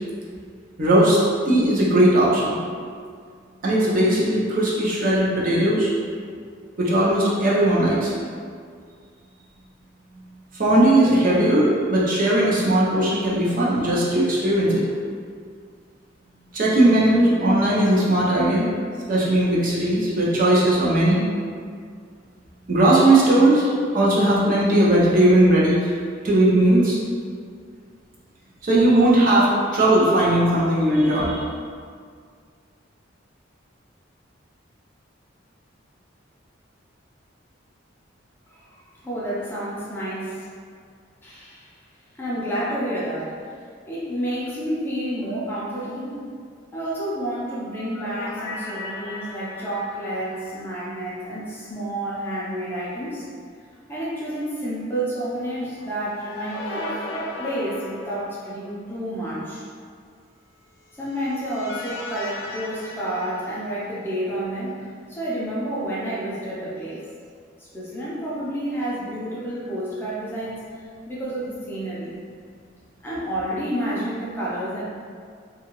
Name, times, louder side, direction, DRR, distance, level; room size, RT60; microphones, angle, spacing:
voice 1, 0.8-1.2 1.5-2.6 3.6-5.9 6.8-8.1 10.5-14.8 16.5-18.7 19.1-21.2 22.7-25.9 26.2-27.0 28.6-31.4, right 1 dB, 45° right, -6 dB, 0.6 m, -18 dB
voice 2, 38.5-40.5 41.2-41.7 42.1-43.3 43.8-46.2 46.7-53.2 53.9-59.6 61.0-67.1 67.6-70.6 71.1-72.2 73.0-74.8, right 1 dB, 10° left, -8 dB, 0.5 m, -30 dB
sound 1, 47.4-51.7 52.0-52.1 55.6-58.7 60.8-64.2, left 2 dB, 85° left, 0.6 m, -37 dB
2.8 x 2.4 x 3.0 m, 2.1 s
head